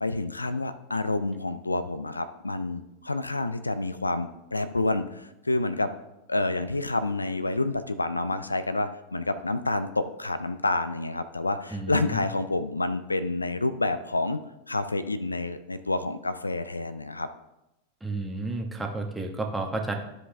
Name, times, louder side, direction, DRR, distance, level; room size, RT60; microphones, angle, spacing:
voice 1, 0.0-5.9 6.3-14.4 14.7-17.3, left 2 dB, 80° left, 12 dB, 0.4 m, -28 dB
voice 2, 11.7-12.3 18.0-19.9, right 2 dB, 10° right, 2 dB, 1.2 m, -31 dB
13.0 x 4.9 x 3.4 m, 0.91 s
figure-of-eight pair, 90°, 0 cm